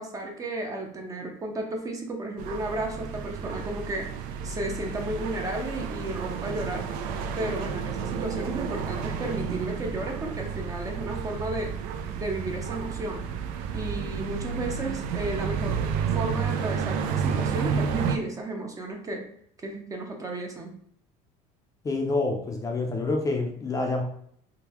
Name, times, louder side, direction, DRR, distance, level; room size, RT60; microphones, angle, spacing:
voice 1, 0.0-4.1 4.4-6.9 7.4-11.8 12.2-13.2 13.7-19.3 19.6-20.7, right 2 dB, 20° right, 2 dB, 0.6 m, -33 dB
sound 1, 2.4-18.2, right 6 dB, 70° right, 0.4 m, -31 dB
voice 2, 21.8-24.0, left 3 dB, 20° left, 1 dB, 0.5 m, -27 dB
3.7 x 2.2 x 2.9 m, 0.65 s
cardioid pair, 125°, 15 cm